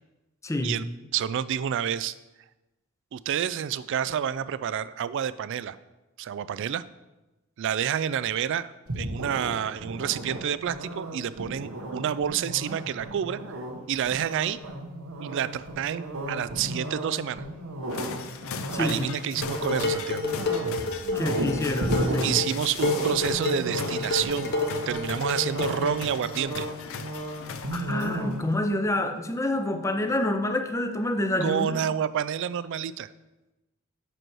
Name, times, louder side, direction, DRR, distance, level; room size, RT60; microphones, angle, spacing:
voice 1, 0.4-0.8 18.7-19.0 21.1-22.4 27.7-31.8, left 1 dB, 15° left, 6 dB, 0.6 m, -27 dB
voice 2, 1.1-2.1 3.1-5.8 6.2-6.8 7.6-13.4 13.9-14.6 15.2-17.5 18.8-20.2 22.2-24.6 24.9-26.7 31.4-33.1, right 9 dB, 60° right, 15 dB, 0.3 m, -29 dB
sound 1, 8.9-28.7, right 1 dB, 80° right, 1.1 m, -35 dB
sound 2, 17.9-28.3, left 6 dB, 70° left, 0.6 m, -39 dB
Dishes pots and pans, 19.4-26.0, left 3 dB, 50° left, 0.9 m, -30 dB
7.7 x 6.2 x 4.6 m, 1.0 s
head